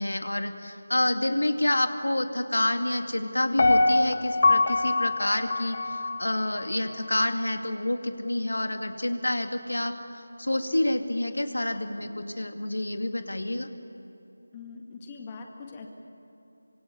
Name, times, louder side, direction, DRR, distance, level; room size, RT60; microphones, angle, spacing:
voice 1, 0.0-9.9 10.4-13.7, left 1 dB, 80° left, 6 dB, 2.2 m, -28 dB
Piano, 3.6-6.7 7.1-7.2, left 2 dB, 45° left, 1.1 m, -24 dB
voice 2, 14.5-15.9, left 4 dB, 20° left, 2 dB, 2.0 m, -42 dB
26.0 x 24.5 x 8.5 m, 2.9 s
figure-of-eight pair, 165°, 0 cm